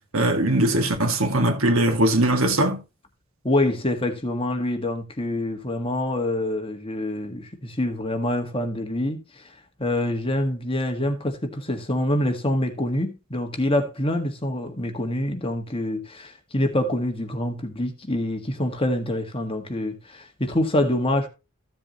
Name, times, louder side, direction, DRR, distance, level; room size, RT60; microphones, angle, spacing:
voice 1, 0.1-2.8, right 1 dB, 70° right, 2.4 m, -20 dB
voice 2, 3.4-21.3, left 1 dB, 25° left, 1.7 m, -26 dB
15.0 x 7.5 x 3.1 m
head